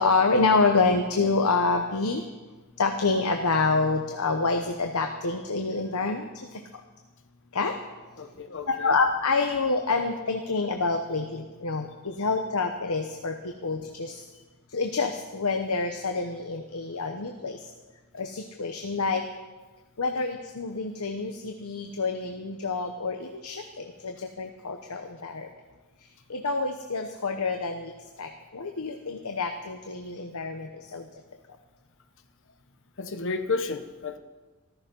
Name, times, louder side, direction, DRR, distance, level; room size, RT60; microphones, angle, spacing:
voice 1, 0.0-2.2 2.8-6.2 7.5-7.7 8.8-13.3 13.6-14.1 14.7-17.6 18.2-19.2 20.0-23.6 24.4-25.5 26.3-27.9 28.2-28.3 28.5-30.7 30.9-31.0, left 3 dB, 85° left, 5 dB, 1.0 m, -27 dB
voice 2, 8.2-9.0 33.0-34.2, left 4 dB, 60° left, 8 dB, 1.1 m, -32 dB
14.0 x 13.5 x 5.5 m, 1.3 s
head